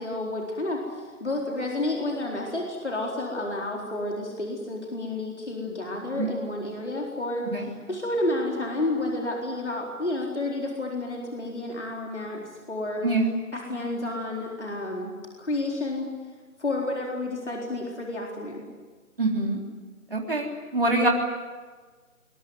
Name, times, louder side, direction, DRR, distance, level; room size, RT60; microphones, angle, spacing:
voice 1, 0.0-13.0 13.5-15.1 15.4-16.1 16.6-18.6, left 2 dB, 50° left, -1 dB, 4.2 m, -30 dB
voice 2, 13.0-13.3 19.2-19.6 20.1-21.1, right 2 dB, 35° right, 0 dB, 3.8 m, -25 dB
22.5 x 22.5 x 9.4 m, 1.4 s
figure-of-eight pair, 165°, 45 cm